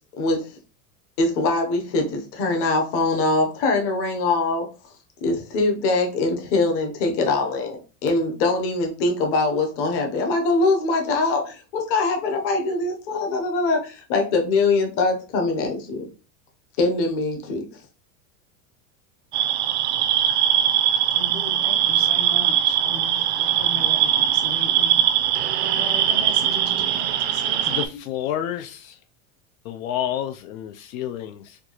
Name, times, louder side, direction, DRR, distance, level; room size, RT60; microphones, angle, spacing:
voice 1, 1.2-4.7 5.2-16.1 16.8-17.6, left 3 dB, 35° left, 2 dB, 0.7 m, -23 dB
sound 1, 19.3-27.9, right 10 dB, 55° right, 0.5 m, -21 dB
voice 2, 21.1-25.0 25.3-28.0, left 5 dB, 60° left, 6 dB, 1.0 m, -38 dB
voice 3, 27.7-29.0 29.6-31.6, left 11 dB, 80° left, 7 dB, 0.5 m, -29 dB
4.4 x 2.3 x 2.9 m, 0.34 s
supercardioid pair, 170°, 41 cm